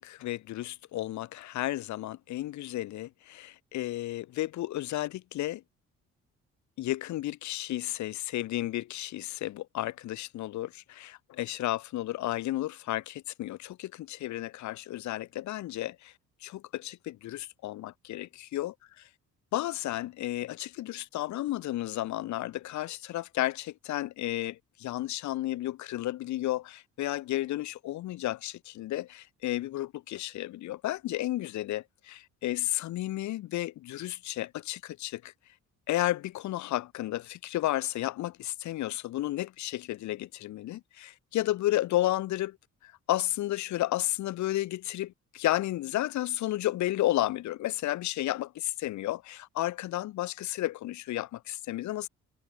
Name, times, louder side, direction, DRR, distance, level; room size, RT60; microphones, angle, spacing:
voice 1, 0.0-5.6 6.8-16.1 16.4-18.7 19.5-35.3 35.9-42.6 42.8-52.1, left 15 dB, 70° left, 0.7 m, -32 dB
cardioid pair, 90°, 30 cm